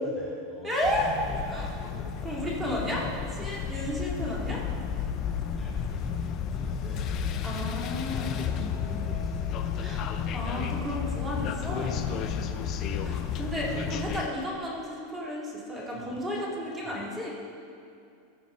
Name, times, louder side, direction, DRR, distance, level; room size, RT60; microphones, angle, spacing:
voice 1, 0.0-2.7 5.5-7.4 7.8-10.1 10.6-10.9 11.6-14.1 15.9-16.2 16.5-17.0, left 1 dB, 5° left, -7 dB, 2.0 m, -44 dB
voice 2, 0.6-1.1 1.5-1.7 2.2-4.6 7.4-8.3 9.8-10.0 10.3-12.0 13.0-17.3, equal, 15° right, -4 dB, 2.5 m, -33 dB
sound 1, 0.8-14.3, left 7 dB, 45° left, 0.6 m, -32 dB
14.0 x 5.2 x 5.3 m, 2.5 s
hypercardioid pair, 90°, 0 cm